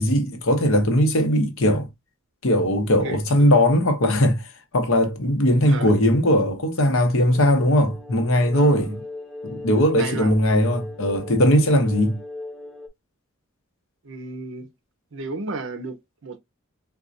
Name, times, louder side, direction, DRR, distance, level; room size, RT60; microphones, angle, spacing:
voice 1, 0.0-1.9 2.4-4.5 4.7-9.0 9.4-12.2, equal, 70° left, 0.8 m, -19 dB
voice 2, 3.0-3.7 5.6-5.9 8.5-9.0 9.8-10.3 14.0-14.7 15.1-16.4, right 3 dB, 60° right, 0.7 m, -34 dB
sound 1, 7.3-12.9, left 2 dB, 5° left, 0.4 m, -38 dB
4.0 x 2.3 x 2.4 m
head